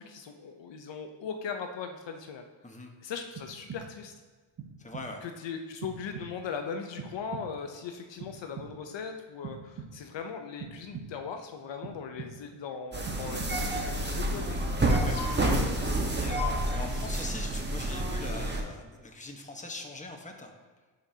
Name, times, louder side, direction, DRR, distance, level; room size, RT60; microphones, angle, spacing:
voice 1, 0.0-2.4 3.0-4.1 5.2-14.7 15.0-15.9, left 6 dB, 60° left, 5 dB, 0.8 m, -39 dB
sound 1, 3.4-4.1 4.6-5.3 5.8-6.6 7.0-7.8 8.2-9.0 9.4-10.2 10.6-11.4 11.8-12.6 13.0-13.9, right 6 dB, 45° right, 1.1 m, -44 dB
voice 2, 4.8-5.2 14.8-15.5 16.1-20.5, left 2 dB, 15° left, 2 dB, 1.2 m, -41 dB
sound 2, 12.9-18.6, right 1 dB, 20° right, 1.3 m, -29 dB
11.0 x 5.2 x 2.8 m, 1.4 s
cardioid pair, 70°, 49 cm